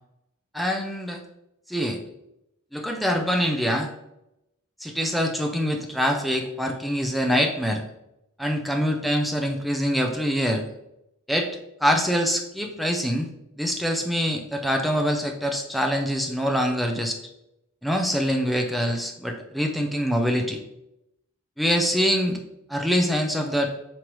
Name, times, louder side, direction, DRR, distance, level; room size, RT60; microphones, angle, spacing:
voice 1, 0.5-1.2 1.7-2.0 2.7-3.9 4.8-7.8 8.4-10.6 11.3-11.5 11.8-13.3 13.6-17.2 17.8-20.6 21.6-22.4 22.7-23.7, equal, ahead, 3 dB, 0.4 m, -24 dB
5.2 x 3.1 x 3.0 m, 0.86 s
head